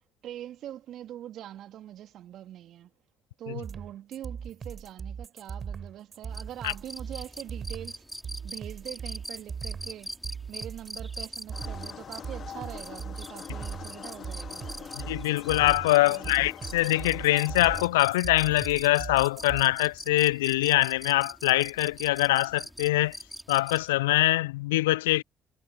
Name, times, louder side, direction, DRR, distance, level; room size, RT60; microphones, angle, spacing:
voice 1, 0.2-2.9 3.4-8.1 8.4-10.2 10.5-15.0 16.0-16.3, right 12 dB, 60° right, 2.3 m, -43 dB
sound 1, 3.6-19.6, right 6 dB, 45° right, 5.5 m, -39 dB
sound 2, 6.3-23.9, equal, ahead, 4.5 m, -43 dB
sound 3, 11.5-17.9, left 8 dB, 50° left, 1.7 m, -43 dB
voice 2, 15.0-23.2 23.5-25.2, left 18 dB, 80° left, 0.3 m, -24 dB
figure-of-eight pair, 45°, 0 cm